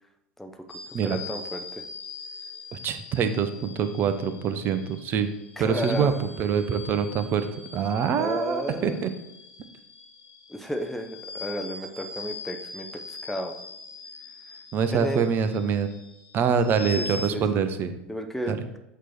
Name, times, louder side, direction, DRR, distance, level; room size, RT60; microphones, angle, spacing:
voice 1, 0.4-1.8 5.6-6.2 8.2-9.0 10.5-13.5 14.9-15.2 16.8-17.4 18.1-18.6, equal, 5° left, 5 dB, 0.6 m, -33 dB
sound 1, 0.7-17.3, left 4 dB, 50° left, 1.1 m, -42 dB
voice 2, 2.7-5.3 5.6-6.1 6.4-7.5 7.7-9.1 14.7-15.9 16.3-17.9 18.5-18.6, right 7 dB, 35° right, 10 dB, 0.7 m, -25 dB
8.0 x 3.1 x 4.4 m, 0.90 s
figure-of-eight pair, 80°, 6 cm